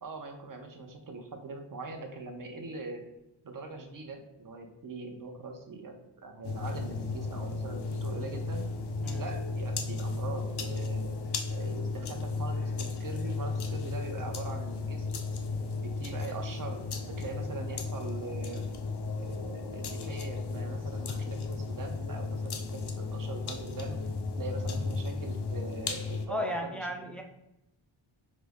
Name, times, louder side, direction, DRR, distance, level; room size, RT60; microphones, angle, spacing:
voice 1, 0.0-3.1 3.4-8.6 9.2-11.2 11.5-15.1 15.8-18.7 19.2-24.0 24.4-27.2, right 3 dB, 45° right, 4 dB, 0.7 m, -42 dB
sound 1, 6.4-26.3, left 3 dB, 55° left, 0.6 m, -34 dB
voice 2, 26.3-27.2, left 1 dB, 5° left, 2 dB, 0.4 m, -34 dB
5.0 x 2.0 x 3.4 m, 0.88 s
wide cardioid pair, 100°, 47 cm